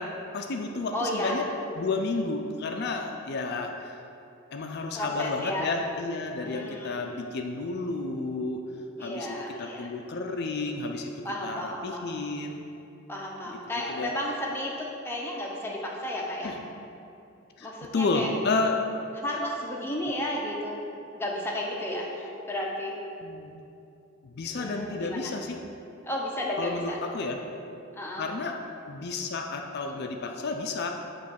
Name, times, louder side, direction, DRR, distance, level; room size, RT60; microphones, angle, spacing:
voice 1, 0.0-1.5 1.8-4.0 4.5-8.6 9.0-11.1 11.4-12.7 13.9-14.2 16.4-16.6 17.6-18.8 23.2-23.6 24.2-25.6 26.6-27.4 28.2-28.6 28.9-30.9, left 3 dB, 50° left, 3 dB, 0.4 m, -31 dB
voice 2, 0.9-1.4 4.9-5.7 6.4-7.1 9.0-9.9 11.2-12.2 13.1-16.6 17.6-18.3 19.2-20.9 21.1-23.0 24.4-25.4 26.0-27.0 27.9-28.3, left 1 dB, 10° left, -2 dB, 0.7 m, -33 dB
7.4 x 3.1 x 5.7 m, 2.7 s
head